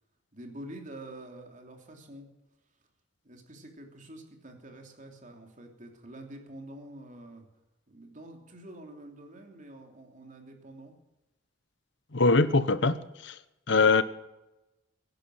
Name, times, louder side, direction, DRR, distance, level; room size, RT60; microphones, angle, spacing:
voice 1, 0.3-2.3 3.2-7.5 7.9-10.9, right 1 dB, 40° right, 3 dB, 3.1 m, -47 dB
voice 2, 12.1-12.9 13.2-13.3 13.7-14.0, left 3 dB, 65° left, 14 dB, 1.0 m, -22 dB
16.5 x 11.0 x 7.8 m, 0.98 s
head